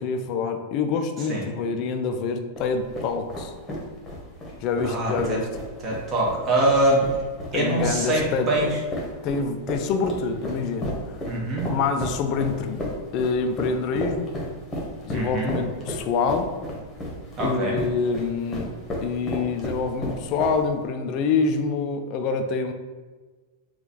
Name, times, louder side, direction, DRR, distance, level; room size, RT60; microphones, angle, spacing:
voice 1, 0.0-3.5 4.6-5.5 7.5-8.5 9.2-11.2 11.6-12.9 13.1-14.3 15.0-16.5 17.4-22.7, left 5 dB, 40° left, 6 dB, 0.4 m, -26 dB
sound 1, 2.6-20.9, left 1 dB, 20° left, 1.1 m, -34 dB
voice 2, 4.8-5.4 5.8-7.0 7.5-8.8 11.3-11.7 15.1-15.6 17.4-17.8, right 1 dB, 25° right, -3 dB, 1.1 m, -24 dB
3.7 x 2.4 x 3.9 m, 1.4 s
figure-of-eight pair, 90°, 0 cm